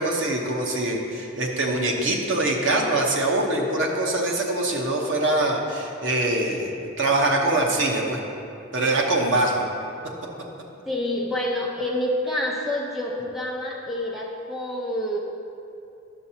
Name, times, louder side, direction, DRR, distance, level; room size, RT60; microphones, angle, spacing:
voice 1, 0.0-8.2 8.7-9.6, right 2 dB, 80° right, -1 dB, 1.0 m, -23 dB
voice 2, 10.9-15.2, left 1 dB, ahead, -3 dB, 0.7 m, -27 dB
10.5 x 7.0 x 2.8 m, 2.7 s
head